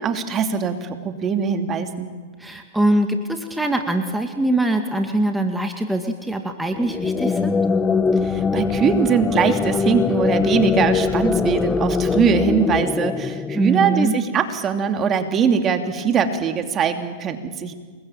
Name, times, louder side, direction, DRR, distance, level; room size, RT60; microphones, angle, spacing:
voice 1, 0.0-2.1 8.2-17.7, right 6 dB, 30° right, 7 dB, 2.8 m, -21 dB
voice 2, 2.4-7.6 13.5-14.1, right 1 dB, 5° right, 5 dB, 2.2 m, -22 dB
sound 1, 6.7-14.2, left 5 dB, 15° left, 1.0 m, -22 dB
28.0 x 22.0 x 9.1 m, 1.5 s
hypercardioid pair, 105°, 0 cm